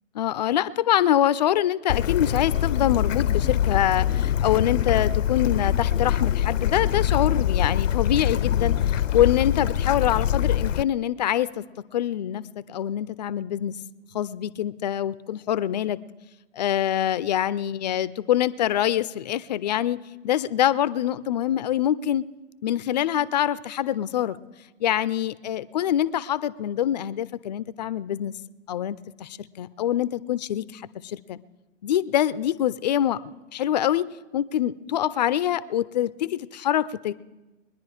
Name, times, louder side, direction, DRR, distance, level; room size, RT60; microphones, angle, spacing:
voice 1, 0.1-11.6 11.9-13.8 14.1-16.0 16.5-20.0 20.2-22.3 22.6-24.4 24.8-28.3 28.7-31.4 31.8-34.1 34.3-37.1, left 11 dB, 35° left, 17 dB, 0.4 m, -25 dB
Bird / Stream, 1.9-10.8, left 10 dB, 85° left, 0.6 m, -24 dB
22.0 x 10.5 x 4.9 m, 1.1 s
hypercardioid pair, 130°, 37 cm